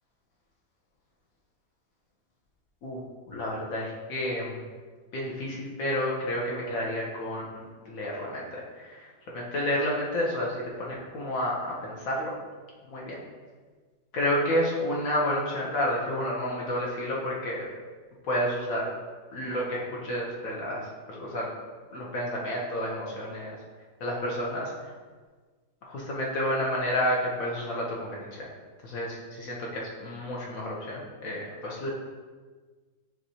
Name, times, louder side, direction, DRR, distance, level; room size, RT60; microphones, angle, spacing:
voice 1, 3.3-4.6 5.1-9.1 9.3-12.3 12.9-13.2 14.1-17.7 18.2-18.9 19.3-21.5 21.9-23.6 24.0-24.9 25.8-28.5 28.8-31.9, equal, 60° left, -3 dB, 1.0 m, -30 dB
6.1 x 3.1 x 2.7 m, 1.4 s
omnidirectional pair, 1.9 m